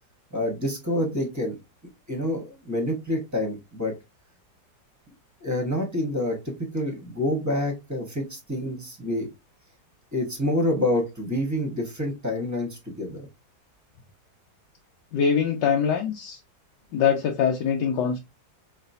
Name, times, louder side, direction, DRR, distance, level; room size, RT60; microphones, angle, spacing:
voice 1, 0.3-1.6 2.1-3.9 5.4-9.3 10.1-13.3, left 1 dB, 10° right, 2 dB, 0.9 m, -27 dB
voice 2, 15.1-16.4 16.9-18.2, left 7 dB, 75° left, 2 dB, 1.3 m, -23 dB
4.0 x 3.2 x 2.6 m, 0.23 s
omnidirectional pair, 2.0 m